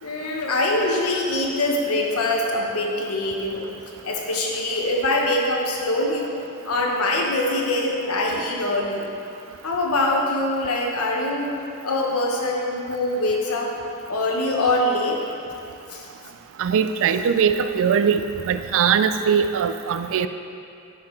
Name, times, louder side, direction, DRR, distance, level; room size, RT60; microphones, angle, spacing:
voice 1, 0.0-3.7 4.0-6.3 6.6-9.1 9.6-11.5 11.8-13.7 14.1-15.3 15.9-16.1, left 2 dB, 75° left, 0 dB, 1.1 m, -23 dB
voice 2, 16.6-20.3, right 7 dB, 60° right, 10 dB, 0.4 m, -21 dB
9.6 x 5.9 x 3.2 m, 2.6 s
head